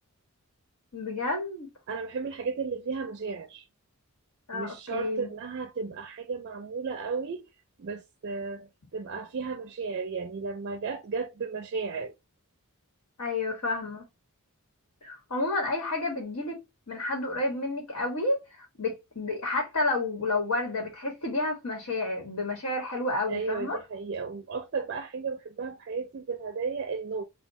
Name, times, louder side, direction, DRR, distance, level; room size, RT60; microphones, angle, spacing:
voice 1, 0.9-1.7 4.5-5.3 13.2-14.0 15.0-16.6 16.9-23.8, left 2 dB, 80° left, 1.3 m, -30 dB
voice 2, 1.9-3.7 4.5-7.4 7.8-12.1 23.3-27.2, right 4 dB, 50° right, 0.4 m, -34 dB
3.6 x 2.3 x 4.1 m
head